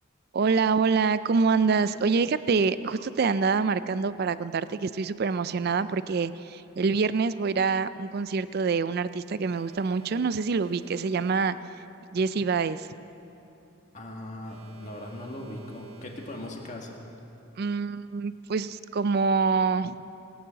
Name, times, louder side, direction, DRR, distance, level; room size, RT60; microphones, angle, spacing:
voice 1, 0.3-11.6 12.1-12.9 17.6-20.0, right 5 dB, 50° right, 14 dB, 0.4 m, -26 dB
Alarm, 9.4-12.0 14.4-17.0, right 4 dB, 80° right, 1.3 m, -53 dB
voice 2, 13.9-17.0, left 1 dB, 35° left, 0 dB, 1.8 m, -39 dB
19.0 x 9.5 x 7.5 m, 2.8 s
head